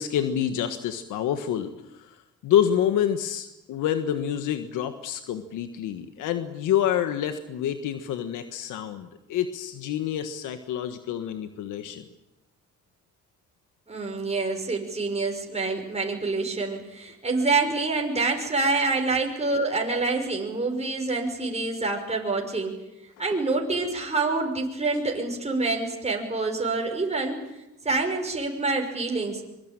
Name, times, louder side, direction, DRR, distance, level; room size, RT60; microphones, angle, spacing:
voice 1, 0.0-12.0 23.3-23.4, left 10 dB, 90° left, 8 dB, 1.6 m, -27 dB
voice 2, 13.9-22.8 23.2-27.4 27.8-29.4, right 3 dB, 20° right, 1 dB, 5.8 m, -26 dB
24.5 x 23.5 x 9.1 m, 0.91 s
cardioid pair, 90°, 30 cm